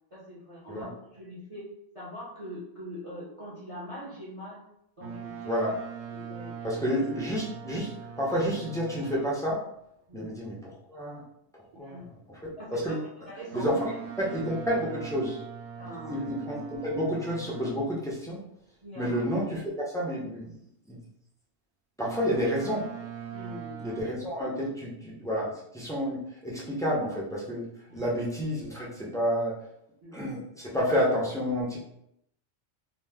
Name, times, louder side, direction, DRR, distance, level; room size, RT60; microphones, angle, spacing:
voice 1, 0.1-1.7 1.9-4.6 5.0-5.7 6.1-6.6 10.1-10.4 11.7-12.2 12.6-13.0 13.3-13.8 14.2-14.4 15.8-16.2 18.8-19.2 23.3-23.9 25.1-25.3 27.9-28.1 30.0-30.2, equal, 35° right, -7 dB, 0.6 m, -43 dB
Boat Water vehicle, 5.0-9.5 13.5-18.0 22.0-24.0, right 7 dB, 75° right, 1.0 m, -41 dB
voice 2, 6.6-9.6 10.1-11.2 11.8-12.0 12.7-13.0 13.5-13.8 14.2-15.4 16.1-18.4 19.0-20.5 20.9-21.0 22.0-22.9 23.8-27.6 27.9-29.6 30.1-31.8, equal, 5° left, -6 dB, 0.4 m, -30 dB
2.9 x 2.0 x 3.4 m, 0.76 s
omnidirectional pair, 1.2 m